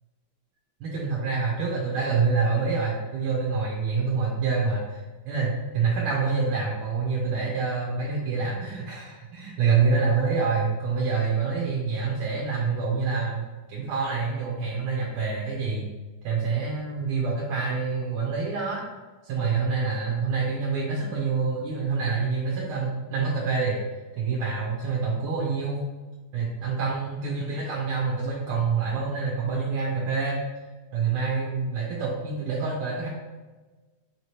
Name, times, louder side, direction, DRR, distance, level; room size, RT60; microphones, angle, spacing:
voice 1, 0.8-15.9 16.2-18.8 19.2-23.8 24.1-25.8 26.3-30.4 30.9-33.1, right 4 dB, 80° right, -4 dB, 1.6 m, -26 dB
4.5 x 2.8 x 3.1 m, 1.2 s
omnidirectional pair, 2.4 m